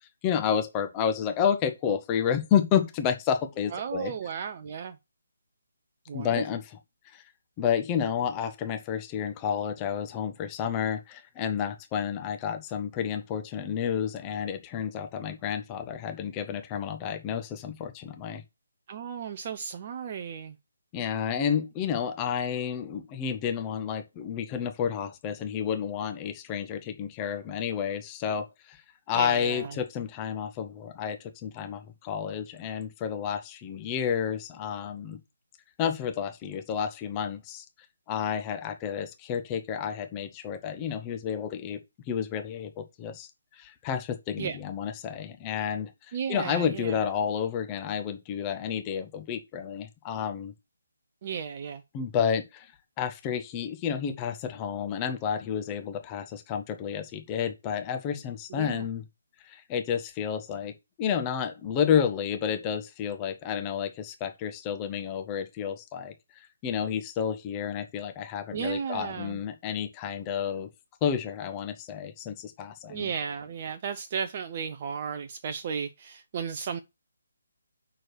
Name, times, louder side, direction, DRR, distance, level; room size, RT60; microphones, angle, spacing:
voice 1, 0.2-4.1 6.1-6.6 7.1-7.2 7.6-18.4 20.9-28.8 29.1-35.2 35.8-37.6 38.1-41.8 42.1-50.5 51.9-52.7 53.0-59.0 59.4-70.7 71.0-73.1, left 8 dB, 20° left, 0.9 m, -30 dB
voice 2, 3.7-5.0 6.1-6.4 18.9-20.6 29.1-29.8 44.4-44.6 46.1-47.1 51.2-51.8 58.5-58.9 68.5-69.4 72.9-76.8, right 7 dB, 30° right, 0.5 m, -34 dB
6.1 x 4.5 x 6.3 m
figure-of-eight pair, 145°, 0 cm